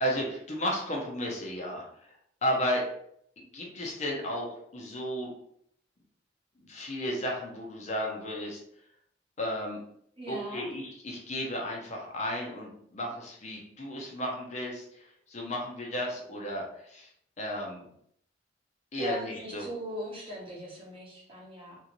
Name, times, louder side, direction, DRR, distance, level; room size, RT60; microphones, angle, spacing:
voice 1, 0.0-2.1 2.4-2.8 3.4-5.3 6.7-8.6 9.4-9.8 10.3-17.1 17.4-17.8 18.9-19.7, equal, 40° left, -1 dB, 0.6 m, -33 dB
voice 2, 10.2-10.7 19.0-21.8, equal, 30° right, -4 dB, 0.9 m, -39 dB
3.0 x 2.6 x 2.9 m, 0.69 s
head